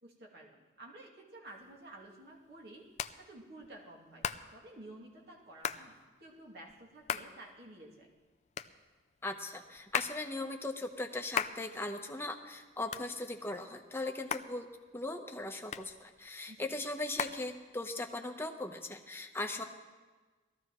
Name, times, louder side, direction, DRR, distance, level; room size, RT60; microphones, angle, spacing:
voice 1, 0.0-2.9 3.2-4.3 4.5-8.1 16.5-16.8, right 1 dB, 65° right, -2 dB, 2.6 m, -52 dB
Hands, 1.5-18.1, left 7 dB, 40° left, 0.4 m, -42 dB
voice 2, 9.2-14.7 14.9-19.6, left 2 dB, 15° left, 4 dB, 0.9 m, -39 dB
19.5 x 14.0 x 3.1 m, 1.3 s
head